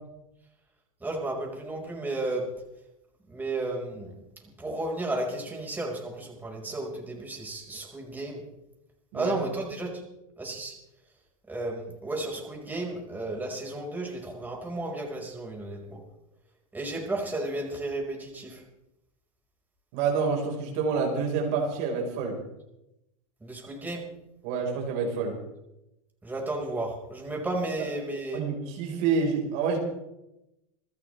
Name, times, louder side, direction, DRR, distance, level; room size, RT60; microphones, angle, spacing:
voice 1, 1.0-2.5 3.3-4.1 4.6-8.4 9.1-10.0 10.4-10.8 11.5-16.0 16.7-18.6 23.4-24.0 26.2-28.4, right 2 dB, 10° right, -1 dB, 5.3 m, -33 dB
voice 2, 19.9-22.4 24.4-25.4 27.8-27.9 28.3-29.8, right 5 dB, 55° right, 0 dB, 5.0 m, -28 dB
28.0 x 13.5 x 3.5 m, 0.89 s
hypercardioid pair, 115°, 18 cm